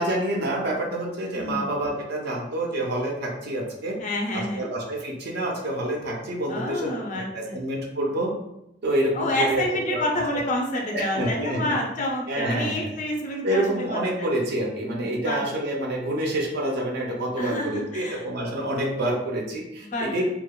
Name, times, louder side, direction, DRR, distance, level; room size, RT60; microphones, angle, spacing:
voice 1, 0.0-4.0 4.3-8.3 8.8-10.2 10.9-11.7 12.3-12.9 13.4-20.2, right 1 dB, 60° right, 0 dB, 0.4 m, -27 dB
voice 2, 4.0-4.7 6.5-7.6 9.1-14.3 15.3-15.4 17.4-18.2 19.8-20.2, left 1 dB, 40° left, 0 dB, 0.4 m, -28 dB
2.8 x 2.1 x 2.2 m, 0.85 s
head